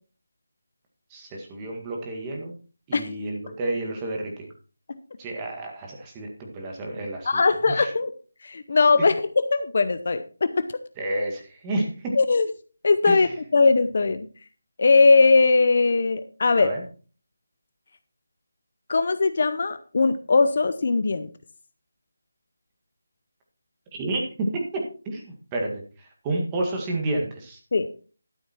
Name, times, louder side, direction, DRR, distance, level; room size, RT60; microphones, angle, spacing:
voice 1, 1.1-2.5 2.9-4.5 5.2-7.4 7.8-7.9 9.0-9.1 11.0-12.1 13.1-13.3 16.6-16.8 23.9-27.6, right 2 dB, 10° right, 1 dB, 1.8 m, -30 dB
voice 2, 7.2-8.1 8.4-10.7 12.1-12.5 12.8-14.3 14.8-16.7 18.9-21.3 27.7-27.9, left 4 dB, 45° left, 12 dB, 0.7 m, -20 dB
12.5 x 7.2 x 4.4 m, 0.38 s
figure-of-eight pair, 175°, 0 cm